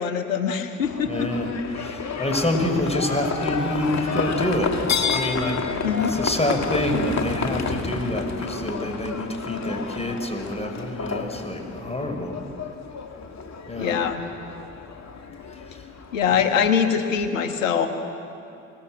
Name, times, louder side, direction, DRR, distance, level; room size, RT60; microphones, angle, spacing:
voice 1, 0.0-1.3 5.8-6.1 13.8-14.2 16.1-17.9, left 7 dB, 90° left, 6 dB, 1.5 m, -23 dB
Livestock farm animals working animals, 0.8-17.3, left 5 dB, 45° left, 2.5 m, -30 dB
voice 2, 1.1-1.5 1.8-4.7 5.1-5.6 6.0-12.4 13.6-13.9 15.7-15.8, left 1 dB, 15° left, 5 dB, 5.7 m, -27 dB
26.0 x 20.5 x 8.0 m, 2.7 s
hypercardioid pair, 45°, 38 cm